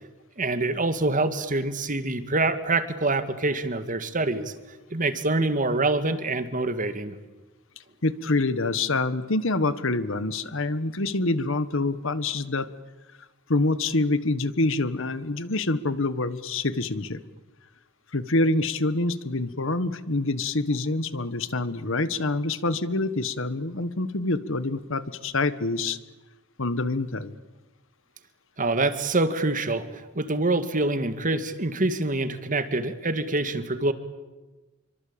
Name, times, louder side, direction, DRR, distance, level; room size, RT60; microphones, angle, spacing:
voice 1, 0.4-4.5 4.9-7.2 28.6-33.9, right 2 dB, 40° right, 10 dB, 2.0 m, -25 dB
voice 2, 8.0-12.7 13.5-17.2 18.1-26.0 26.6-27.4, left 2 dB, 65° left, 14 dB, 1.4 m, -26 dB
27.5 x 24.5 x 8.8 m, 1.2 s
head